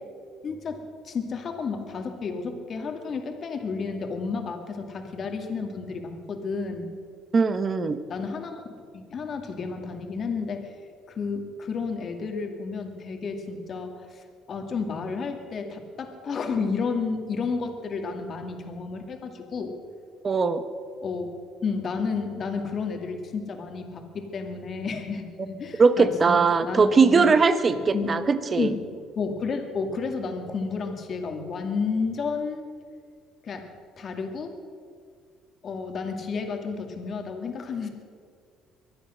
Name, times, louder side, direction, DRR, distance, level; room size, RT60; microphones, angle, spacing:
voice 1, 0.4-6.9 8.1-8.6 8.9-10.7 11.1-19.8 21.0-21.3 21.6-27.3 27.9-28.1 28.6-28.9 29.2-32.7 33.4-33.7 34.0-34.5 35.6-37.9, left 4 dB, 50° left, 4 dB, 2.2 m, -31 dB
voice 2, 7.3-8.0 20.2-20.6 25.8-28.7, right 4 dB, 35° right, 12 dB, 1.2 m, -20 dB
23.5 x 9.0 x 6.4 m, 2.1 s
supercardioid pair, 85°, 0 cm